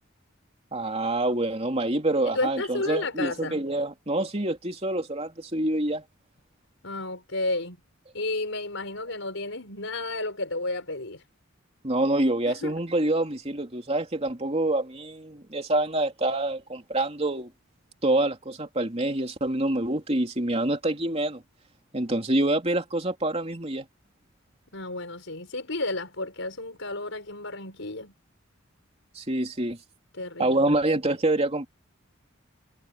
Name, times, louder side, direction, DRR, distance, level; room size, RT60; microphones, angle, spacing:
voice 1, 0.7-6.0 11.8-17.5 18.0-21.4 21.9-23.8 29.1-29.8 30.4-31.7, right 1 dB, 30° right, 3.0 m, -26 dB
voice 2, 2.2-3.6 6.8-7.8 8.1-11.2 12.5-12.7 24.7-28.1 30.1-30.8, left 2 dB, 70° left, 5.8 m, -32 dB
head